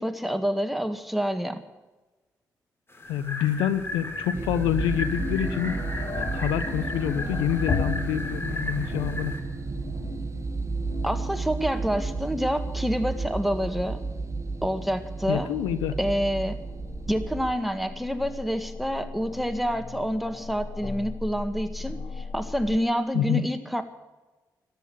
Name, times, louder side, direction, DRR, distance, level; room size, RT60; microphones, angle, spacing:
voice 1, 0.0-1.6 11.0-14.0 14.6-15.5 16.0-16.6 17.1-23.8, equal, ahead, 8 dB, 1.8 m, -28 dB
sound 1, 2.9-9.4, left 2 dB, 30° left, 3.8 m, -36 dB
voice 2, 3.1-5.8 6.2-9.3 15.3-16.0 23.1-23.4, left 10 dB, 90° left, 13 dB, 0.7 m, -27 dB
sound 2, 3.1-22.8, left 4 dB, 50° left, 1.8 m, -38 dB
sound 3, 4.3-17.5, right 3 dB, 40° right, 1.3 m, -32 dB
13.5 x 10.5 x 8.5 m, 1.2 s
supercardioid pair, 45°, 8 cm